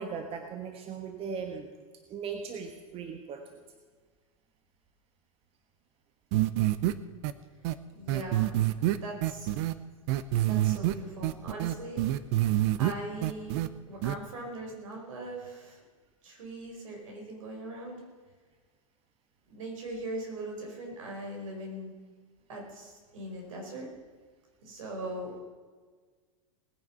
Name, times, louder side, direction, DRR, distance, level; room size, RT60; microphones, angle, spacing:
voice 1, 0.0-1.7 2.1-3.6 10.8-11.0, right 6 dB, 35° right, 6 dB, 1.4 m, -38 dB
sound 1, 6.3-6.9 7.2-7.3 7.6-7.7 8.1-9.7 10.1-10.9 11.2-12.9 13.2-13.7 14.0-14.1, right 15 dB, 55° right, 0.8 m, -26 dB
voice 2, 7.9-8.5 8.9-9.5 10.4-12.0 12.8-15.8 16.2-18.0 19.5-22.0 22.5-23.9 24.6-25.3, right 1 dB, 70° right, 1 dB, 4.9 m, -40 dB
19.5 x 9.5 x 5.6 m, 1.5 s
hypercardioid pair, 100°, 17 cm